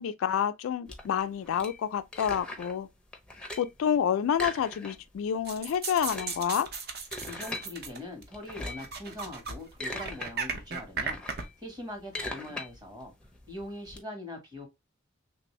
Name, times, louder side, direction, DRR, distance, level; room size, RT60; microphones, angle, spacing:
voice 1, 0.0-2.9 3.6-6.7, left 8 dB, 75° left, 0.3 m, -28 dB
sound 1, 0.9-2.8 3.1-3.8 4.3-5.2 5.5-5.6 5.9-7.7 8.3-8.9 9.5-10.3 10.7-14.0, left 2 dB, 5° left, 0.5 m, -40 dB
sound 2, 5.5-8.2 8.5-9.5 9.8-11.4, right 4 dB, 50° right, 0.6 m, -36 dB
voice 2, 7.2-13.1 13.5-14.7, left 1 dB, 20° right, 1.3 m, -42 dB
3.2 x 2.6 x 3.0 m
head